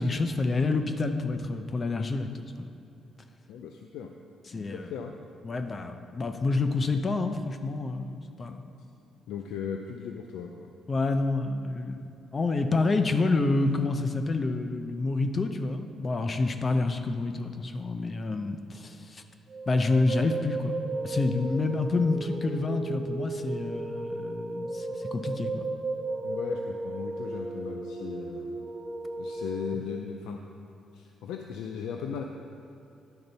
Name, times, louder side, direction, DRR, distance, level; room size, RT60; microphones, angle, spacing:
voice 1, 0.0-2.7 4.5-4.9 5.4-8.6 10.9-12.0 12.3-19.2 19.7-20.8 21.0-25.6, left 3 dB, 35° left, 8 dB, 0.6 m, -28 dB
voice 2, 3.5-4.1 4.5-5.1 9.3-10.7 26.2-28.7 29.2-30.4 30.9-32.2, left 7 dB, 90° left, 3 dB, 0.4 m, -37 dB
sound 1, 19.5-29.7, right 2 dB, 35° right, 0.6 m, -35 dB
10.5 x 3.9 x 5.4 m, 2.8 s
cardioid pair, 90°, 0 cm